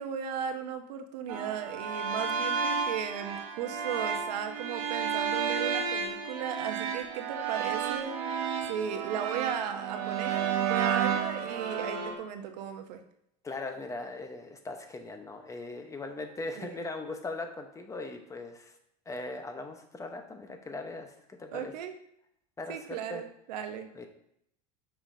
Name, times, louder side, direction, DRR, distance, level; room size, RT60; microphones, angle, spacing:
voice 1, 0.0-8.2 8.7-13.0 16.6-16.8 21.5-21.9 22.7-23.9, right 8 dB, 85° right, 7 dB, 0.8 m, -36 dB
sound 1, 1.3-12.2, right 7 dB, 70° right, 1.1 m, -32 dB
voice 2, 13.4-18.7 19.1-21.1 21.4-21.7 22.6-23.2 23.9-24.1, left 2 dB, 15° left, 5 dB, 0.9 m, -39 dB
6.8 x 5.6 x 2.7 m, 0.75 s
supercardioid pair, 115°, 21 cm